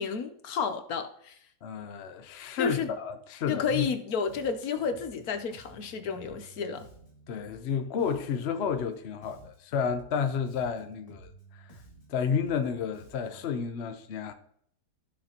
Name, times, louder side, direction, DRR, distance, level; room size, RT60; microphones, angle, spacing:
voice 1, 0.0-1.4 2.6-2.9 3.5-6.9, left 6 dB, 65° left, 1.2 m, -31 dB
voice 2, 1.6-3.9 7.3-11.8 12.1-14.3, left 6 dB, 50° left, 0.8 m, -31 dB
Bass guitar, 3.7-4.0 4.3-9.0 9.2-13.5, right 2 dB, 20° left, 1.7 m, -54 dB
14.0 x 6.4 x 2.9 m
omnidirectional pair, 1.8 m